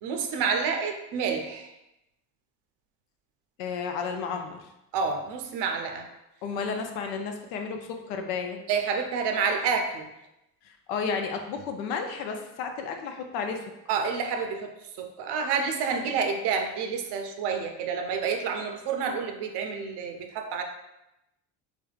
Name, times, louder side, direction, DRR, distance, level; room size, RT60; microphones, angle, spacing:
voice 1, 0.0-1.7 4.9-6.1 8.7-10.1 13.9-20.6, right 5 dB, 55° right, 4 dB, 0.6 m, -29 dB
voice 2, 3.6-4.7 6.4-8.6 10.6-13.6, left 5 dB, 70° left, 4 dB, 0.7 m, -32 dB
3.4 x 3.3 x 2.4 m, 0.89 s
hypercardioid pair, 60°, 49 cm